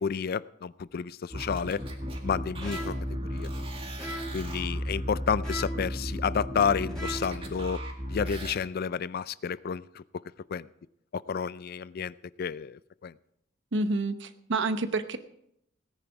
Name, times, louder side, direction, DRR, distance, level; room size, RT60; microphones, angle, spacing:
voice 1, 0.0-1.8 2.2-2.9 3.3-3.5 4.3-7.8 8.1-10.0 10.5-10.7 11.1-13.1, left 6 dB, 50° left, 19 dB, 0.4 m, -30 dB
sound 1, 1.3-8.5, equal, 30° right, 2.0 m, -35 dB
sound 2, 2.6-3.1 4.0-4.5 5.4-5.9 6.9-7.4, equal, 5° left, 3.4 m, -38 dB
voice 2, 13.7-15.2, right 2 dB, 65° right, 11 dB, 0.9 m, -28 dB
17.5 x 10.0 x 4.8 m, 0.76 s
head